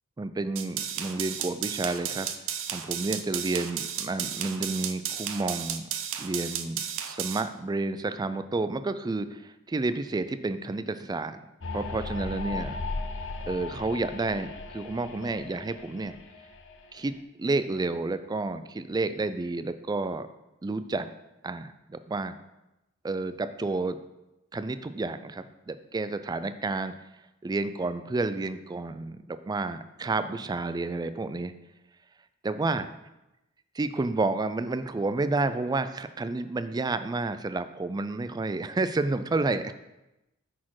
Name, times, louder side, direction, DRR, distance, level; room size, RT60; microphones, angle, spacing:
voice 1, 0.2-2.3 2.7-5.8 6.2-11.4 11.7-12.8 13.5-16.2 16.9-20.3 20.6-21.1 21.4-22.3 23.0-24.0 24.5-26.9 27.4-31.5 32.4-32.9 33.7-39.7, right 3 dB, 20° right, 11 dB, 0.3 m, -30 dB
sound 1, 0.6-7.4, right 9 dB, 60° right, 0.6 m, -33 dB
sound 2, 11.6-17.1, left 3 dB, 60° left, 0.7 m, -37 dB
10.0 x 4.3 x 4.7 m, 0.96 s
head